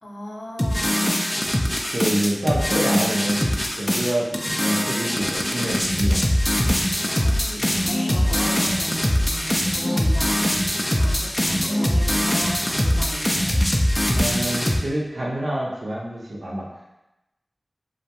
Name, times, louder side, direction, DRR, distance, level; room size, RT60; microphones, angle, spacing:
voice 1, 0.0-1.5 7.0-10.6 11.0-13.9, equal, 55° left, -4 dB, 0.6 m, -36 dB
sound 1, 0.6-14.8, equal, 15° left, 0.3 m, -22 dB
voice 2, 1.9-3.4 3.7-4.3 4.6-6.2 14.2-16.7, right 1 dB, 75° right, -4 dB, 0.5 m, -26 dB
2.3 x 2.0 x 2.8 m, 0.94 s
wide cardioid pair, 50°, 0 cm